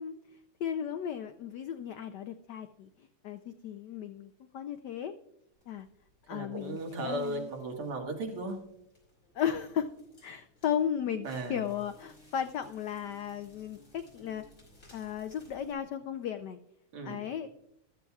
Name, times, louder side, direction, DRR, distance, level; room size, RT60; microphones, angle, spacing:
voice 1, 0.0-5.1 5.7-5.9 6.3-7.5 9.3-9.9 10.2-14.5 14.9-16.6 17.0-17.5, left 9 dB, 80° left, 9 dB, 0.9 m, -35 dB
Crackle, 5.5-15.7, equal, 50° left, 5.6 m, -61 dB
voice 2, 6.3-8.6 11.2-11.6 16.9-17.2, right 2 dB, 80° right, 2 dB, 2.7 m, -36 dB
14.5 x 13.0 x 2.4 m, 0.83 s
omnidirectional pair, 2.4 m